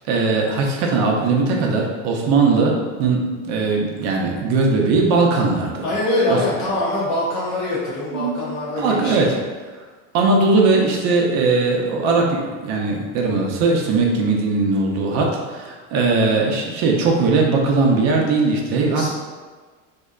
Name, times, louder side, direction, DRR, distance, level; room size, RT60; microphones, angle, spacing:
voice 1, 0.1-5.8 6.3-6.4 8.1-8.4 8.8-9.4 10.1-19.1, right 3 dB, 40° right, 0 dB, 0.5 m, -19 dB
voice 2, 5.8-9.4 18.8-19.1, left 1 dB, 55° left, -7 dB, 0.7 m, -24 dB
2.7 x 2.1 x 2.3 m, 1.4 s
supercardioid pair, 120°, 41 cm